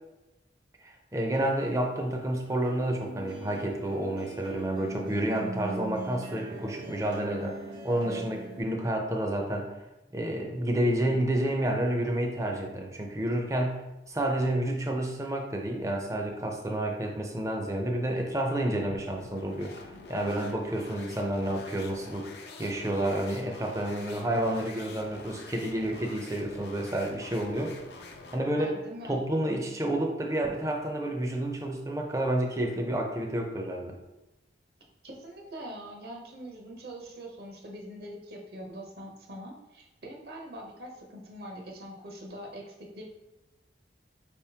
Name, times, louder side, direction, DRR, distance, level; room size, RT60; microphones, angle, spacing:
voice 1, 0.8-7.6 7.8-9.7 10.1-22.3 22.6-27.8 28.3-28.7 29.0-34.0, right 1 dB, 15° right, 2 dB, 0.5 m, -30 dB
sound 1, 1.4-8.6, right 3 dB, 90° right, 1.3 m, -41 dB
sound 2, 18.9-28.5, left 3 dB, 65° left, 0.5 m, -47 dB
voice 2, 28.6-29.3 35.0-43.0, equal, 60° right, -1 dB, 0.9 m, -43 dB
5.1 x 3.5 x 2.8 m, 1.0 s
head